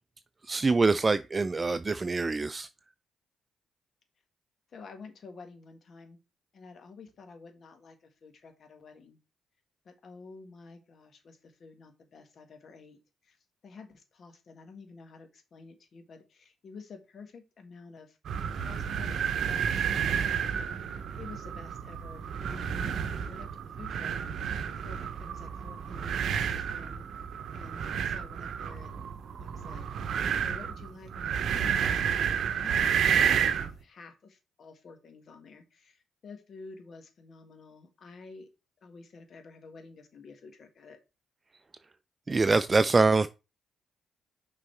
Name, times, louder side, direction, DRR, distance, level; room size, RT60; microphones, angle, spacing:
voice 1, 0.4-2.7 42.3-43.3, right 3 dB, 30° right, 0.4 m, -24 dB
voice 2, 4.7-6.2 6.5-9.2 9.9-13.4 13.6-18.2 18.6-24.5 24.8-29.0 29.4-29.9 30.4-38.5 38.8-41.0, left 4 dB, 55° left, 1.7 m, -50 dB
sound 1, 18.2-33.7, right 8 dB, 65° right, 0.7 m, -31 dB
6.1 x 4.0 x 4.4 m
hypercardioid pair, 50°, 0 cm